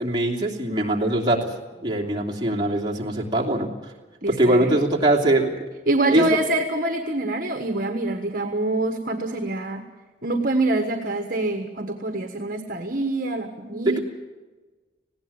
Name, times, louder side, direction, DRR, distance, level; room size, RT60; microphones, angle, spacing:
voice 1, 0.0-1.5 1.8-3.7 4.3-5.6 6.1-6.2 13.8-14.0, right 1 dB, 25° right, -1 dB, 2.8 m, -22 dB
voice 2, 4.2-4.7 5.9-9.8 10.2-14.0, right 2 dB, 50° right, 5 dB, 1.4 m, -25 dB
19.5 x 16.5 x 8.8 m, 1.3 s
head